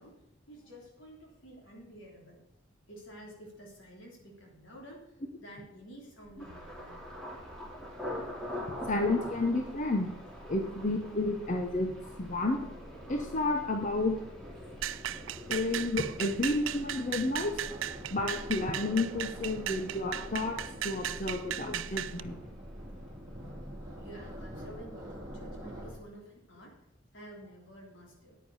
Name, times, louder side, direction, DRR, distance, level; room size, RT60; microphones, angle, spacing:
voice 1, 0.0-2.4 2.9-5.1 5.4-7.0 23.9-26.8 27.1-28.4, right 1 dB, 75° left, -1 dB, 3.3 m, -50 dB
sound 1, 6.2-25.9, equal, 20° right, 2.5 m, -47 dB
Thunder, 6.4-22.2 22.4-23.0 23.5-23.7, left 1 dB, 5° left, 2.3 m, -46 dB
voice 2, 8.9-10.1 10.5-12.6 13.1-14.2 15.5-17.6 18.1-20.6 20.8-22.4, left 2 dB, 40° left, 3 dB, 0.8 m, -31 dB
sound 2, 14.8-22.2, right 11 dB, 80° right, 0.4 m, -37 dB
9.6 x 9.2 x 4.1 m, 0.88 s
head